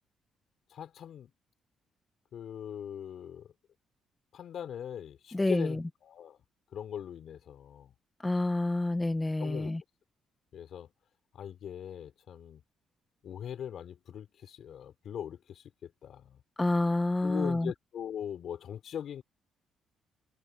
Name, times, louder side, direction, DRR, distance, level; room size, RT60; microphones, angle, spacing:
voice 1, 0.7-1.3 2.3-3.5 4.3-6.4 6.7-7.9 9.4-9.7 10.5-10.9 11.3-12.6 13.2-16.4 17.2-19.2, left 9 dB, 65° left, 4.2 m, -41 dB
voice 2, 5.3-5.8 8.2-9.8 16.6-17.7, left 2 dB, 15° left, 1.6 m, -28 dB
cardioid pair, 90°, 0 cm